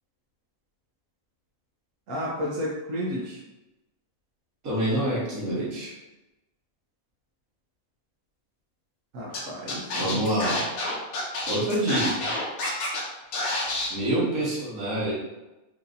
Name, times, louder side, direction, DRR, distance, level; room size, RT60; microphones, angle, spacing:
voice 1, 2.1-3.4 9.1-10.4, equal, 70° right, -4 dB, 1.1 m, -32 dB
voice 2, 4.6-5.9 10.0-10.6 11.5-12.3 13.9-15.1, right 1 dB, 85° right, -7 dB, 1.9 m, -26 dB
Scratching (performance technique), 9.3-9.4 9.7-13.0 13.3-13.9, left 2 dB, 85° left, 1.3 m, -28 dB
4.6 x 2.8 x 2.6 m, 1.0 s
omnidirectional pair, 1.5 m